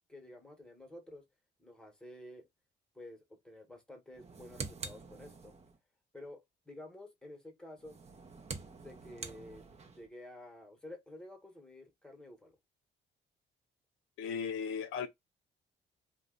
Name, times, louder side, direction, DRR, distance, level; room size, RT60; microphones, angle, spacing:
voice 1, 0.1-1.2 1.6-2.5 2.9-5.6 6.1-8.0 8.8-12.6, left 1 dB, 5° left, 1.1 m, -51 dB
sound 1, 4.1-5.8 7.8-10.1, right 4 dB, 35° right, 0.6 m, -46 dB
voice 2, 14.2-15.1, left 6 dB, 85° left, 0.5 m, -36 dB
2.6 x 2.2 x 3.7 m
cardioid pair, 90°, 20 cm